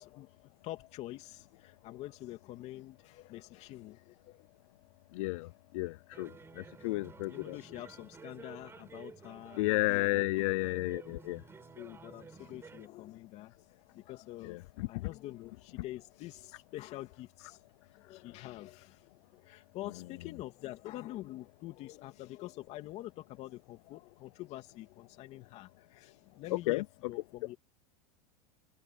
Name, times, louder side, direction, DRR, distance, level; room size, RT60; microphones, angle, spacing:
voice 1, 0.0-4.5 7.3-10.5 11.7-13.6 13.9-17.6 17.9-27.6, left 16 dB, 35° left, 2.9 m, -46 dB
voice 2, 5.1-7.6 9.6-11.4 14.4-15.1 26.7-26.8, left 21 dB, 60° left, 0.4 m, -32 dB
sound 1, 6.1-12.9, right 5 dB, 15° right, 6.2 m, -53 dB
supercardioid pair, 160°, 19 cm